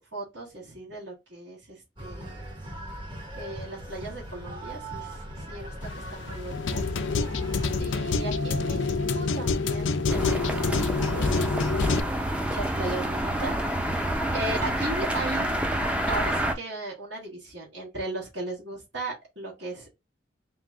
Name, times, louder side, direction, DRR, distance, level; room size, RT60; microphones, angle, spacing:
voice 1, 0.1-2.5 3.3-6.8 7.8-15.6 16.1-19.9, right 2 dB, 70° right, 2.0 m, -37 dB
sound 1, 2.0-7.8, equal, 25° right, 1.2 m, -39 dB
sound 2, 5.8-12.0, left 3 dB, 80° left, 0.5 m, -27 dB
sound 3, 10.1-16.5, right 1 dB, 5° right, 0.6 m, -28 dB
3.7 x 2.9 x 3.6 m
head